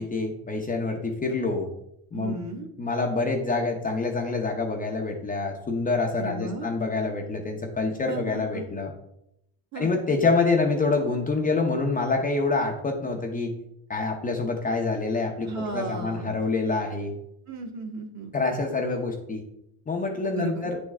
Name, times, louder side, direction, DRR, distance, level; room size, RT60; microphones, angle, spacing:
voice 1, 0.0-1.7 2.1-2.3 2.8-8.9 9.8-13.5 13.9-17.1 18.3-19.4 19.9-20.8, left 3 dB, 20° left, 1 dB, 0.6 m, -26 dB
voice 2, 2.1-2.7 6.2-6.7 8.1-8.6 9.7-9.9 15.4-16.3 17.5-18.3 20.3-20.7, right 3 dB, 40° right, 3 dB, 1.2 m, -35 dB
8.9 x 3.6 x 3.2 m, 0.79 s
cardioid pair, 135°, 43 cm